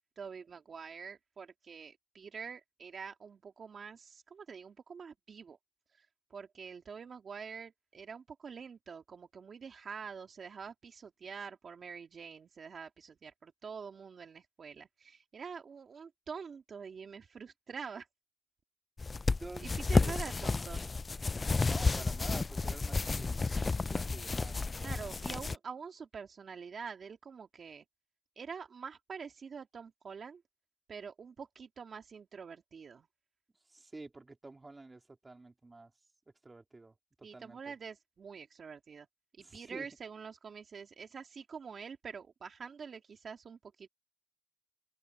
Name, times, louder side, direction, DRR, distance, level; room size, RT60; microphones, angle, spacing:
voice 1, 0.2-5.6 5.9-18.1 19.6-20.8 24.8-27.8 28.4-30.4 30.9-33.1 37.2-39.1 39.4-43.9, right 6 dB, 45° right, 2.1 m, -46 dB
sound 1, 19.0-25.5, left 3 dB, 25° left, 0.4 m, -31 dB
voice 2, 21.6-24.8 33.7-35.9 36.4-37.7 39.4-39.9, right 3 dB, 20° right, 3.0 m, -49 dB
open air
cardioid pair, 90°, 0 cm